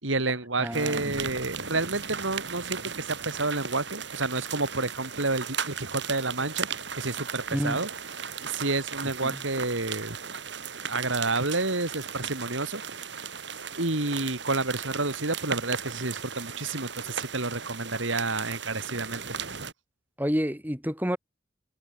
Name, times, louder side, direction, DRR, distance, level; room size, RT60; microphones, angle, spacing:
voice 1, 0.0-6.7 6.9-7.9 8.4-10.2 10.9-13.1 13.8-19.2, right 3 dB, 75° right, 3.5 m, -30 dB
voice 2, 0.6-1.1 7.5-7.8 9.2-9.4 20.2-21.2, equal, 10° right, 5.0 m, -29 dB
sound 1, 0.7-19.7, right 6 dB, 60° right, 3.5 m, -36 dB
head